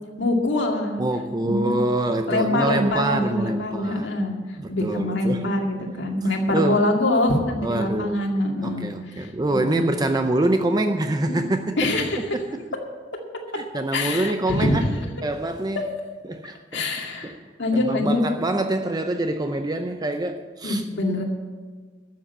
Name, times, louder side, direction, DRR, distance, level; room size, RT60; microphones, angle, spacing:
voice 1, 0.2-1.0 1.4-1.7 2.3-4.4 4.7-9.9 11.3-11.4 11.8-12.2 13.9-15.0 16.7-17.3 17.6-18.2 20.6-21.2, left 1 dB, 70° left, 1 dB, 2.2 m, -24 dB
voice 2, 1.0-4.1 4.6-5.5 6.5-6.8 7.6-8.2 8.6-11.8 12.3-12.4 13.6-14.8 15.2-15.9 16.3-16.8 17.2-17.4 17.8-20.8, right 2 dB, 20° right, 7 dB, 0.5 m, -25 dB
12.5 x 7.6 x 8.3 m, 1.5 s
head